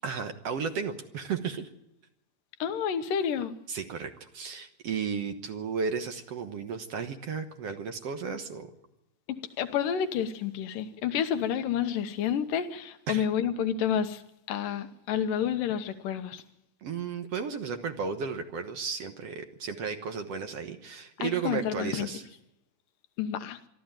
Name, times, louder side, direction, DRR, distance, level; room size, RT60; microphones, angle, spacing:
voice 1, 0.0-1.7 3.7-8.7 13.1-13.3 16.8-22.2, right 6 dB, 60° right, 1.9 m, -34 dB
voice 2, 2.6-3.5 9.6-14.2 14.5-16.4 21.2-22.1 23.2-23.6, left 8 dB, 85° left, 2.7 m, -29 dB
23.5 x 13.0 x 9.0 m
omnidirectional pair, 3.7 m